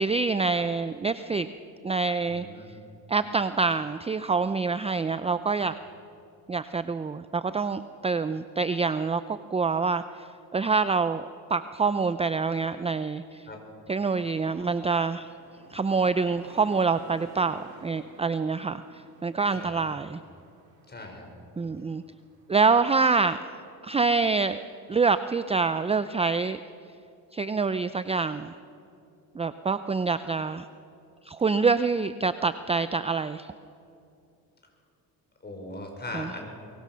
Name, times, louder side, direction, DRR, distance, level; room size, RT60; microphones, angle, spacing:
voice 1, 0.0-1.5 1.8-2.5 3.1-5.7 6.5-10.0 10.5-13.4 13.9-15.3 15.7-20.2 21.6-22.0 22.5-23.4 23.8-24.6 24.9-26.6 27.3-28.5 29.4-30.7 31.3-33.5 36.1-36.3, right 4 dB, 15° right, 12 dB, 0.5 m, -26 dB
voice 2, 2.2-2.7 13.5-13.6 19.5-19.8 20.9-21.3 35.4-36.4, left 2 dB, 25° left, 2 dB, 5.8 m, -39 dB
sound 1, 14.7-22.7, right 3 dB, 70° right, 5.0 m, -53 dB
23.5 x 23.5 x 6.4 m, 2.6 s
cardioid pair, 105°, 38 cm